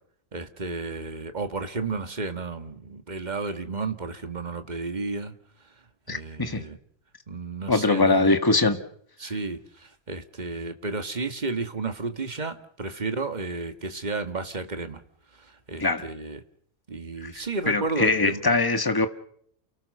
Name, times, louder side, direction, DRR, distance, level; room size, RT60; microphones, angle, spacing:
voice 1, 0.3-5.3 6.1-6.8 7.3-8.4 9.2-15.0 15.7-16.4 16.9-18.4, right 3 dB, 35° right, 8 dB, 1.9 m, -32 dB
voice 2, 6.1-6.6 7.7-8.8 15.8-16.0 17.2-17.3 17.7-19.1, left 3 dB, 15° left, 8 dB, 1.7 m, -22 dB
29.0 x 18.5 x 6.7 m, 0.64 s
omnidirectional pair, 1.4 m